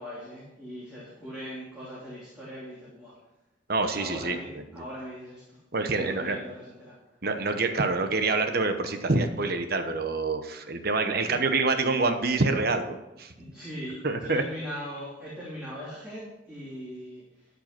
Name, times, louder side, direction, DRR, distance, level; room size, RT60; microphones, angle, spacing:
voice 1, 0.0-3.1 3.9-5.6 5.9-6.9 11.2-11.3 13.4-17.5, equal, 5° right, -9 dB, 2.9 m, -40 dB
voice 2, 3.7-4.8 5.7-6.4 7.2-13.3 14.0-14.4, right 3 dB, 55° right, 7 dB, 1.0 m, -26 dB
13.0 x 5.7 x 5.9 m, 0.93 s
head